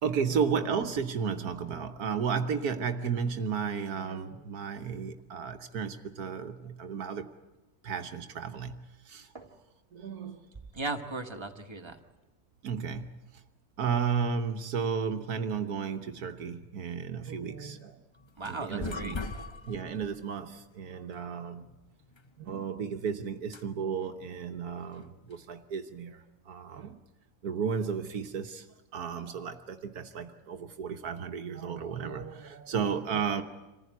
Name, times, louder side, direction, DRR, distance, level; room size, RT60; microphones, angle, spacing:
voice 1, 0.0-7.3 7.8-9.3 9.9-10.4 12.6-13.2 13.8-18.0 18.5-19.2 19.7-21.7 22.4-27.0 27.4-28.7 28.9-33.4, right 6 dB, 75° right, 1.5 m, -33 dB
voice 2, 10.7-12.0 18.4-19.2, right 3 dB, 20° right, 1.5 m, -37 dB
sound 1, 18.1-25.7, left 3 dB, 30° left, 0.5 m, -44 dB
26.0 x 15.5 x 9.5 m
omnidirectional pair, 1.6 m